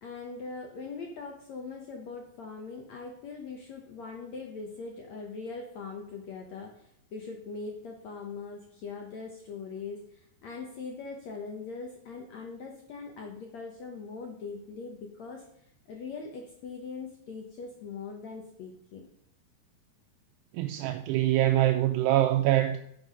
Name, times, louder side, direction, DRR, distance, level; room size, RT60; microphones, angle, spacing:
voice 1, 0.0-15.4 15.8-19.1, left 4 dB, 75° left, 1.6 m, -41 dB
voice 2, 20.5-22.8, right 14 dB, 85° right, 2.6 m, -24 dB
9.6 x 7.0 x 5.2 m
omnidirectional pair, 4.9 m